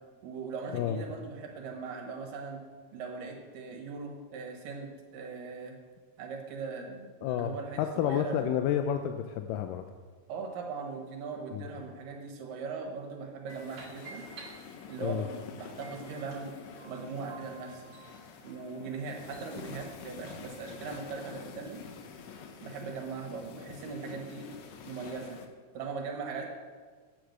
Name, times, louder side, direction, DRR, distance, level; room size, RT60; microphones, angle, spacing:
voice 1, 0.2-2.6 2.9-5.7 6.2-8.5 10.3-14.3 14.9-16.5 16.8-17.8 18.4-21.8 22.6-24.5 24.8-25.4 25.7-26.5, right 5 dB, 85° right, 2 dB, 3.1 m, -40 dB
voice 2, 7.2-9.8 11.5-11.7 15.0-15.3, left 10 dB, 85° left, 7 dB, 2.2 m, -30 dB
sound 1, 13.5-25.5, left 6 dB, 70° left, 1.8 m, -47 dB
sound 2, 13.5-15.2 15.8-19.6, right 4 dB, 60° right, 2.7 m, -52 dB
8.6 x 7.9 x 6.5 m, 1.5 s
omnidirectional pair, 3.8 m